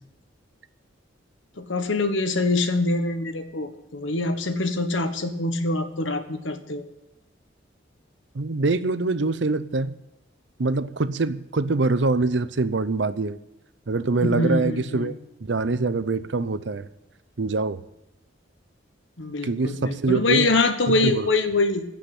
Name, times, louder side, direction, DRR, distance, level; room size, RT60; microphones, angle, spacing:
voice 1, 1.6-6.9 14.2-15.1 19.2-21.8, left 2 dB, 80° left, 8 dB, 1.4 m, -24 dB
voice 2, 8.3-10.0 10.6-13.4 13.9-15.1 15.4-16.9 17.4-17.8 19.4-20.6 20.9-21.3, right 3 dB, 65° right, 14 dB, 0.7 m, -24 dB
16.0 x 5.8 x 10.0 m, 0.90 s
head